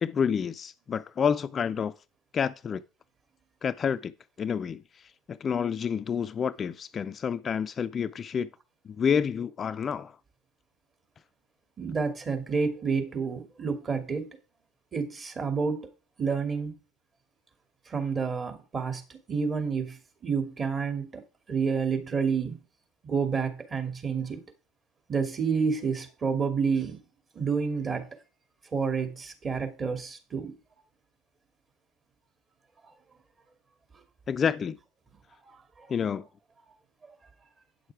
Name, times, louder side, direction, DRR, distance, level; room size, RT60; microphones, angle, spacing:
voice 1, 0.0-1.9 2.3-2.8 3.6-4.1 4.4-5.0 5.3-8.5 8.9-10.2 34.3-34.8 35.9-36.3, left 7 dB, 35° left, 0.4 m, -29 dB
voice 2, 11.8-14.3 14.9-15.9 16.2-16.7 17.9-21.2 21.5-22.6 23.0-24.4 25.1-27.0 27.3-28.1 28.7-30.5 35.5-35.9, right 5 dB, 30° right, 2.4 m, -29 dB
9.3 x 6.5 x 4.8 m
hypercardioid pair, 70°, 0 cm